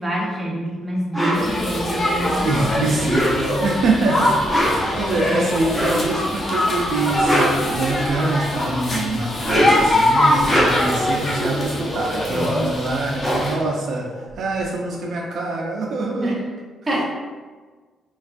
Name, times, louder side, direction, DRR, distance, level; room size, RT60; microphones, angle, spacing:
voice 1, 0.0-3.0 4.9-5.6 12.3-12.7 16.2-16.4 16.9-17.0, right 1 dB, 20° right, -2 dB, 0.6 m, -27 dB
sound 1, 1.1-1.4 2.9-3.7 4.3-4.9 5.7-6.1 7.0-8.3 9.3-9.9 10.3-11.0 12.5-12.6 12.9-14.6, equal, 10° left, 0.8 m, -22 dB
sound 2, 1.3-13.6, left 1 dB, 40° left, 0.7 m, -23 dB
voice 2, 2.4-16.4, right 2 dB, 65° right, -1 dB, 0.4 m, -24 dB
3.2 x 2.2 x 2.4 m, 1.4 s
cardioid pair, 90°, 0 cm